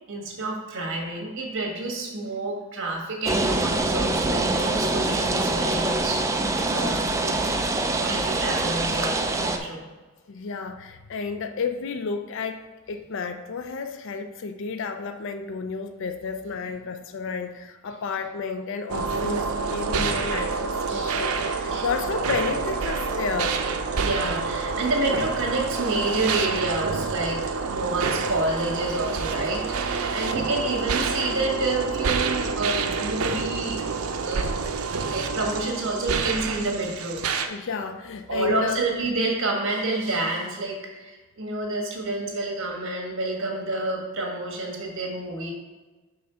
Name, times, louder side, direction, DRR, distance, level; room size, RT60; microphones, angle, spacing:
voice 1, 0.1-7.6 7.9-9.8 20.9-21.2 21.7-21.9 24.0-33.8 34.2-34.5 35.0-37.2 38.3-45.5, right 2 dB, 60° right, 0 dB, 1.5 m, -29 dB
sound 1, 3.2-9.6, right 2 dB, 15° right, 0.4 m, -24 dB
voice 2, 10.3-23.6 37.5-38.8, left 5 dB, 60° left, 8 dB, 0.4 m, -31 dB
sound 2, 18.9-37.5, right 4 dB, 85° right, 0.6 m, -28 dB
5.4 x 3.9 x 5.6 m, 1.3 s
head